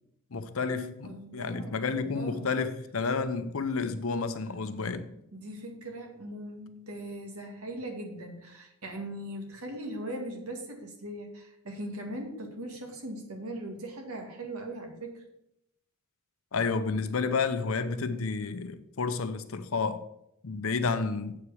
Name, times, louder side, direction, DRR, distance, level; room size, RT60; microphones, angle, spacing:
voice 1, 0.3-5.1 16.5-20.0 20.4-21.4, left 4 dB, 70° left, 0.7 m, -30 dB
voice 2, 1.0-2.5 4.8-4.9 5.3-15.2, right 1 dB, 85° right, 2.0 m, -40 dB
8.0 x 4.8 x 7.0 m
head